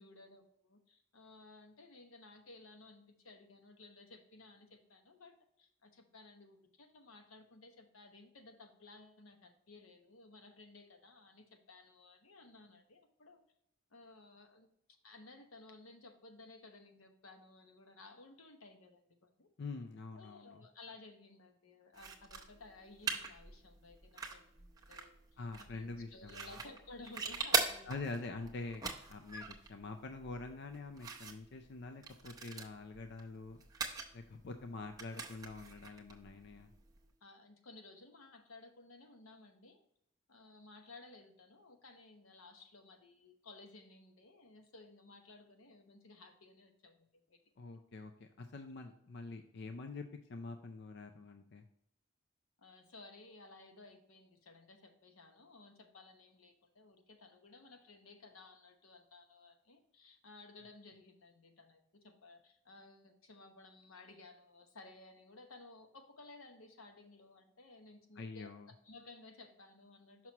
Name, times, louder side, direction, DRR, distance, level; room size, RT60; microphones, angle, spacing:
voice 1, 0.0-13.4 13.9-14.7 15.0-19.5 20.2-28.3 37.2-39.8 40.3-47.4 52.6-70.3, left 3 dB, 90° left, 5 dB, 1.0 m, -57 dB
voice 2, 19.6-20.6 25.4-26.5 27.9-33.6 34.1-36.7 47.6-50.0 50.3-51.6 68.2-68.7, left 3 dB, 55° left, 6 dB, 0.4 m, -45 dB
sound 1, 21.9-37.1, right 5 dB, 20° right, 0.7 m, -42 dB
5.9 x 5.9 x 2.9 m, 0.73 s
head